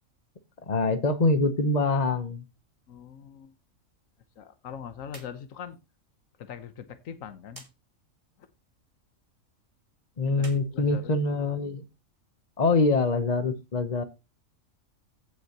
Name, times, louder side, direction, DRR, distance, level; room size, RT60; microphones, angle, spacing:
voice 1, 0.7-2.4 10.2-11.8 12.6-14.0, left 3 dB, 35° left, 0.9 m, -24 dB
voice 2, 2.9-3.5 4.4-5.8 6.4-7.6 10.2-11.1, left 8 dB, 80° left, 1.4 m, -42 dB
sound 1, 5.1-5.4 5.7-5.8 7.5-7.7 10.3-11.6, right 2 dB, 25° right, 2.0 m, -49 dB
15.5 x 6.4 x 2.9 m
omnidirectional pair, 1.4 m